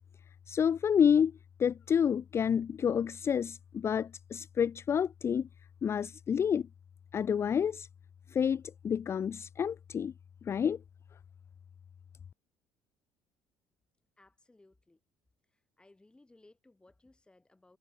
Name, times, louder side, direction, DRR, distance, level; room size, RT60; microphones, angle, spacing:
voice 1, 0.5-5.5 5.8-6.7 7.1-7.9 8.3-10.1 10.4-10.8, left 7 dB, 30° left, 0.4 m, -29 dB
voice 2, 14.2-15.0 15.5-17.8, left 2 dB, 10° left, 5.7 m, -62 dB
cardioid pair, 115°, 8 cm